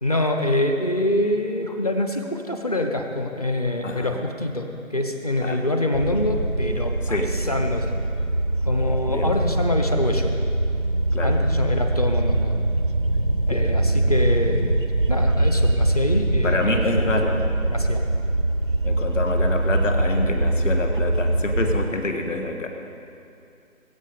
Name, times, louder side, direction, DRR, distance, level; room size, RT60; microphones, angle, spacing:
voice 1, 0.0-7.2 7.5-8.0 8.7-10.3 11.2-12.5 13.5-17.4 17.7-18.0, left 1 dB, 25° left, 4 dB, 0.7 m, -25 dB
voice 2, 3.8-4.1 5.4-5.6 7.0-7.4 9.1-9.3 11.1-11.4 13.5-13.7 16.4-17.5 18.8-22.7, left 2 dB, 60° left, 4 dB, 1.7 m, -27 dB
sound 1, 5.9-21.9, right 1 dB, 40° right, 0.4 m, -23 dB
20.0 x 8.5 x 5.1 m, 2.6 s
figure-of-eight pair, 155°, 43 cm